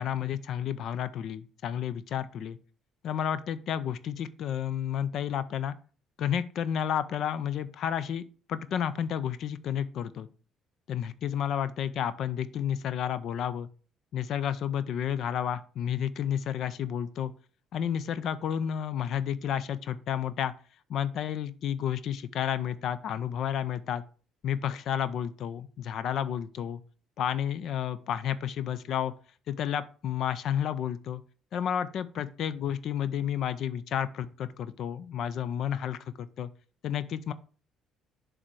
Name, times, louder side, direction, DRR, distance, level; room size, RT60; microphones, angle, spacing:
voice 1, 0.0-2.6 3.0-5.8 6.2-8.2 8.5-10.3 10.9-13.7 14.1-17.3 17.7-20.5 20.9-24.0 24.4-26.8 27.2-29.1 29.5-31.2 31.5-36.5 36.8-37.3, left 9 dB, 60° left, 15 dB, 0.4 m, -31 dB
7.2 x 3.4 x 6.2 m, 0.39 s
hypercardioid pair, 50°, 0 cm